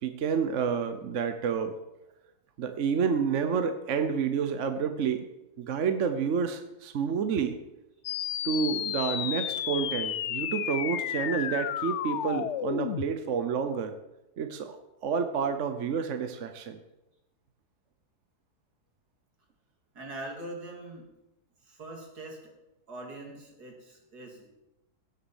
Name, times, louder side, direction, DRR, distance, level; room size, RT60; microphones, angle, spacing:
voice 1, 0.0-1.8 2.6-5.3 5.6-7.6 8.4-13.9 14.4-14.8 15.0-16.8, right 6 dB, 55° right, 8 dB, 1.1 m, -29 dB
sound 1, 8.0-13.1, left 11 dB, 70° left, 0.7 m, -32 dB
voice 2, 19.9-21.1 21.6-22.4 22.9-24.5, right 2 dB, 70° right, 0 dB, 3.4 m, -42 dB
16.5 x 7.3 x 7.1 m, 0.94 s
omnidirectional pair, 1.7 m